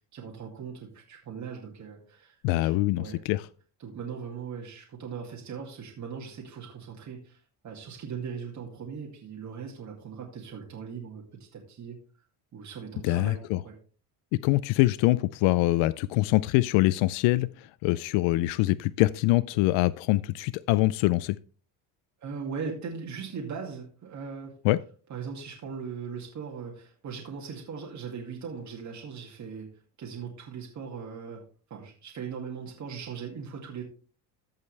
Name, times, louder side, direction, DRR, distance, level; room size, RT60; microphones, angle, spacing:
voice 1, 0.1-2.4 2.6-3.2 3.8-12.0 12.5-13.7 18.2-18.4 22.2-24.6 25.1-29.7 30.0-33.8, right 6 dB, 40° right, -1 dB, 2.3 m, -39 dB
voice 2, 2.4-3.4 13.0-13.6 14.4-21.4 24.6-24.8, left 18 dB, 75° left, 17 dB, 0.5 m, -24 dB
15.0 x 5.5 x 3.3 m, 0.39 s
cardioid pair, 130°, 45 cm